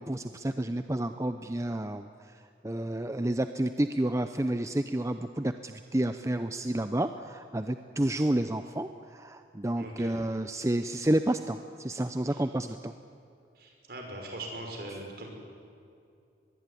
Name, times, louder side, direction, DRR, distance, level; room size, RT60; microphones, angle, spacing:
voice 1, 0.0-2.1 2.6-12.9, right 1 dB, 15° right, 9 dB, 0.6 m, -30 dB
voice 2, 9.7-10.2 12.3-12.4 13.6-15.3, right 1 dB, 55° right, 2 dB, 5.8 m, -41 dB
24.5 x 21.0 x 9.8 m, 2.5 s
head